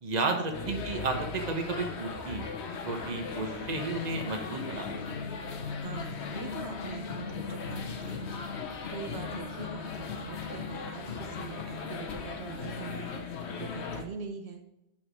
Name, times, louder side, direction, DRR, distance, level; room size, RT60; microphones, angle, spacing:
voice 1, 0.0-2.5 2.8-5.1, right 3 dB, 40° right, 4 dB, 1.1 m, -32 dB
sound 1, 0.5-14.0, left 5 dB, 90° left, 1.1 m, -37 dB
voice 2, 5.8-8.4 8.9-13.1 13.6-14.6, right 6 dB, 80° right, 5 dB, 1.0 m, -43 dB
6.1 x 6.0 x 4.7 m, 0.90 s
omnidirectional pair, 1.1 m